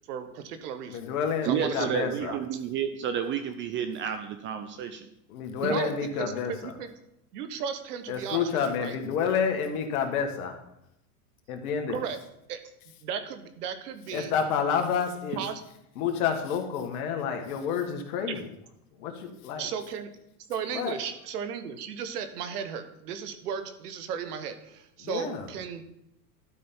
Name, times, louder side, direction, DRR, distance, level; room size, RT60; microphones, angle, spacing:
voice 1, 0.1-1.0 1.4-2.6 5.6-6.9 7.3-8.5 8.8-9.0 11.9-12.2 12.5-12.6 13.0-14.3 15.4-15.6 19.6-20.1 20.5-25.8, right 7 dB, 75° right, 9 dB, 1.3 m, -35 dB
voice 2, 0.9-2.4 5.3-6.7 8.1-10.6 11.5-12.0 14.1-15.4 16.0-18.5 19.0-19.7 20.7-20.9 25.0-25.5, left 7 dB, 65° left, 5 dB, 1.7 m, -29 dB
voice 3, 1.5-5.0, right 8 dB, 25° right, 9 dB, 0.5 m, -30 dB
12.0 x 5.1 x 4.4 m, 0.79 s
hypercardioid pair, 115°, 47 cm